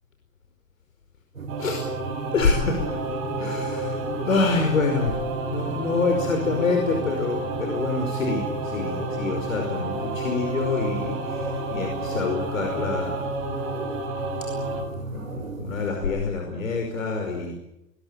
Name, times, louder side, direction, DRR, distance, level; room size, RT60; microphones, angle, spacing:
sound 1, 1.3-15.9, right 3 dB, 80° right, 5.7 m, -35 dB
Singing / Musical instrument, 1.5-14.8, right 2 dB, 35° right, 7.5 m, -31 dB
voice 1, 2.3-2.8 3.4-4.0 4.3-5.1 5.5-13.2 14.9-17.5, left 4 dB, 75° left, 3 dB, 5.3 m, -26 dB
22.0 x 20.0 x 9.0 m, 0.87 s
figure-of-eight pair, 105°, 40 cm